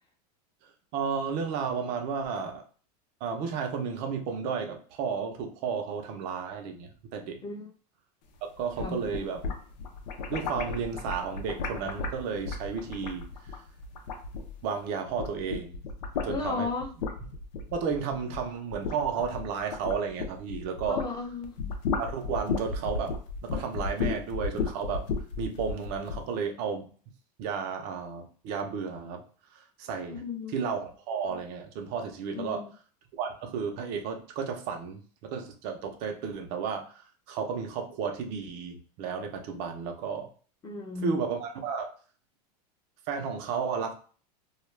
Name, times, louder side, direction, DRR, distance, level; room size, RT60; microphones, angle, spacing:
voice 1, 0.9-2.6 3.2-7.4 8.4-9.5 10.3-13.6 14.6-15.8 16.2-16.7 17.7-21.0 22.0-25.1 25.4-26.8 27.4-29.2 29.5-30.2 30.5-32.6 33.1-40.3 41.0-41.9 43.1-43.9, right 6 dB, 50° right, 4 dB, 0.7 m, -33 dB
sound 1, 8.6-14.8 15.1-21.1 21.4-26.2, left 4 dB, 90° left, 0.6 m, -34 dB
voice 2, 16.3-16.9 20.9-21.5 30.1-30.5 32.3-32.6 40.6-41.2, left 4 dB, 20° left, 2 dB, 0.7 m, -34 dB
2.3 x 2.3 x 3.2 m, 0.41 s
supercardioid pair, 130°, 21 cm